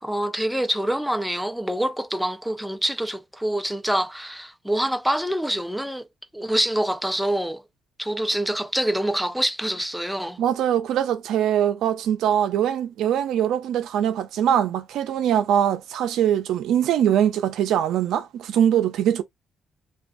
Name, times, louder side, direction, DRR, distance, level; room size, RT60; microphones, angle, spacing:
voice 1, 0.0-6.1 6.3-7.6 8.0-10.4, right 1 dB, ahead, 0.4 m, -26 dB
voice 2, 10.4-19.2, right 10 dB, 80° right, 0.5 m, -22 dB
2.5 x 2.3 x 2.5 m
cardioid pair, 90°, 0 cm